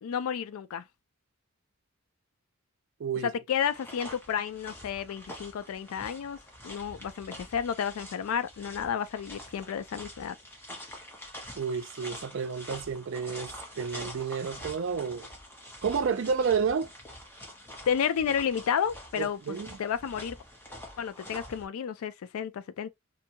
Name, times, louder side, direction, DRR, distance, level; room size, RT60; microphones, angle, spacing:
voice 1, 0.0-0.8 3.2-6.4 6.6-10.4 17.9-20.4 21.0-22.9, left 7 dB, 85° left, 0.3 m, -31 dB
voice 2, 3.0-3.3 11.6-15.3 15.8-16.9 19.2-19.7, right 6 dB, 60° right, 0.4 m, -30 dB
sound 1, 3.6-21.7, left 1 dB, 10° left, 0.7 m, -46 dB
2.7 x 2.2 x 2.7 m
head